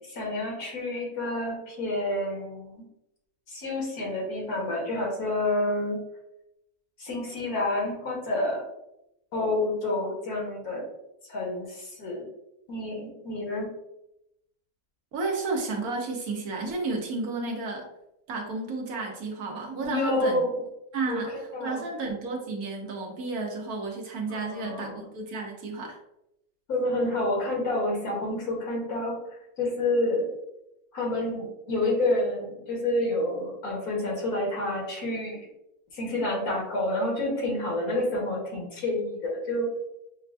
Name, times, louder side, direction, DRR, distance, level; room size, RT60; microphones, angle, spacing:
voice 1, 0.0-2.8 3.5-6.0 7.0-8.6 9.3-10.8 11.3-12.3 12.7-13.7 19.8-20.6 21.1-21.8 24.3-25.0 26.7-29.2 29.6-30.3 30.9-35.4 35.9-39.7, left 1 dB, 75° left, -2 dB, 1.7 m, -29 dB
voice 2, 15.1-17.9 18.3-20.4 20.9-26.0, right 3 dB, 75° right, 1 dB, 1.3 m, -32 dB
6.3 x 2.2 x 2.5 m, 0.84 s
omnidirectional pair, 1.6 m